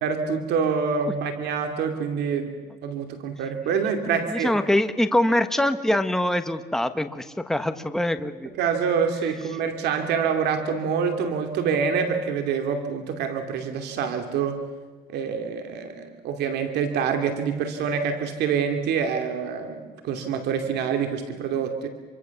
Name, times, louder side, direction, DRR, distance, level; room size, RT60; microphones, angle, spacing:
voice 1, 0.0-2.5 2.8-4.6 8.6-14.6 15.1-21.9, right 6 dB, 80° right, 6 dB, 2.6 m, -26 dB
voice 2, 4.1-8.5, left 1 dB, 5° left, 8 dB, 1.3 m, -24 dB
27.5 x 24.0 x 7.2 m, 1.4 s
cardioid pair, 110°, 17 cm